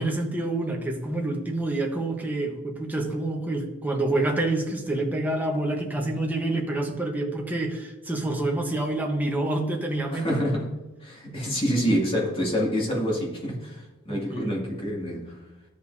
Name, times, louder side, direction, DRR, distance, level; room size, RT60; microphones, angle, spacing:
voice 1, 0.0-10.3 14.1-14.5, right 2 dB, 10° right, 0 dB, 1.1 m, -27 dB
voice 2, 10.1-10.7 11.0-15.4, equal, 25° left, -4 dB, 2.3 m, -27 dB
13.5 x 5.2 x 2.7 m, 1.1 s
head